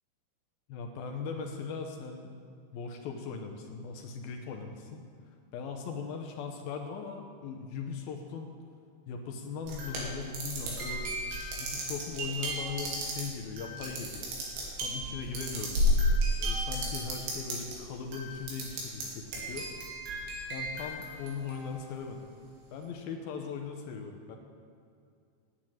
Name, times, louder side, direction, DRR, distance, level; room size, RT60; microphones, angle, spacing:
voice 1, 0.7-2.3 2.7-5.0 5.5-8.5 9.1-11.1 11.6-14.3 14.8-15.8 16.4-19.7 20.5-22.3 22.7-24.4, left 5 dB, 80° left, 3 dB, 2.2 m, -39 dB
sound 1, 9.7-17.8 18.1-19.0 19.3-21.7, equal, 75° right, 4.5 m, -32 dB
9.9 x 8.0 x 8.9 m, 2.4 s
omnidirectional pair, 5.1 m